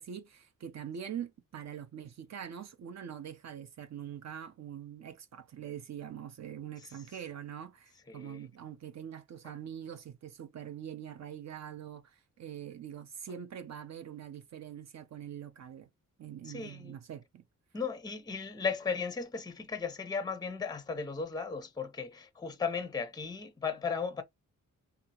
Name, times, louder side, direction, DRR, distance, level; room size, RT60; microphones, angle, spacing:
voice 1, 0.0-15.9 16.2-17.4, right 9 dB, 55° right, 0.5 m, -44 dB
voice 2, 8.1-8.4 16.5-17.0 17.7-24.2, left 5 dB, 15° left, 0.5 m, -36 dB
2.7 x 2.4 x 2.8 m
wide cardioid pair, 95°, 32 cm